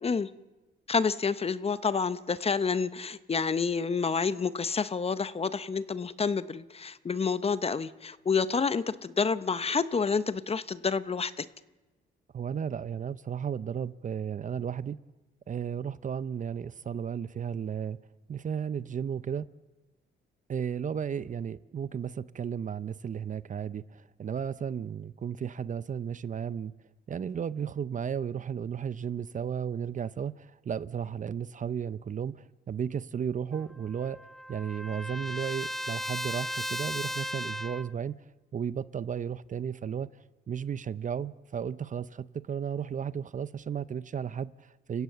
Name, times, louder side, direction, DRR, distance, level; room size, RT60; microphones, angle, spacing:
voice 1, 0.9-11.5, left 5 dB, 30° left, 0.9 m, -29 dB
voice 2, 12.3-15.0 15.5-18.0 18.3-19.5 20.5-26.7 27.1-34.2 34.5-38.2 38.5-40.1 40.5-45.0, right 7 dB, 40° right, 0.7 m, -34 dB
Trumpet, 33.5-37.9, equal, ahead, 0.6 m, -36 dB
29.5 x 16.5 x 6.9 m
cardioid pair, 90°, 20 cm